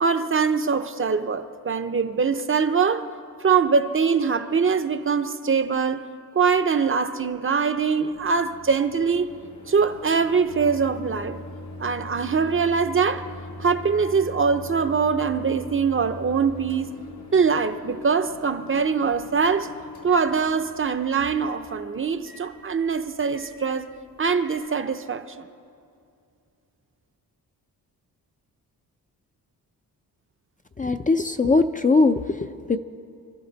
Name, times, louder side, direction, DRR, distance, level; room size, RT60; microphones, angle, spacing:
voice 1, 0.0-3.1 3.4-6.0 6.3-9.3 9.7-11.4 11.8-13.3 13.6-17.0 17.3-19.7 20.0-23.9 24.2-25.5, right 5 dB, 35° right, 0.7 m, -23 dB
Microwave oven, 8.1-24.6, left 1 dB, 75° left, 3.9 m, -41 dB
voice 2, 30.8-32.8, left 3 dB, 20° left, 0.5 m, -21 dB
27.5 x 13.0 x 4.0 m
wide cardioid pair, 110°, 37 cm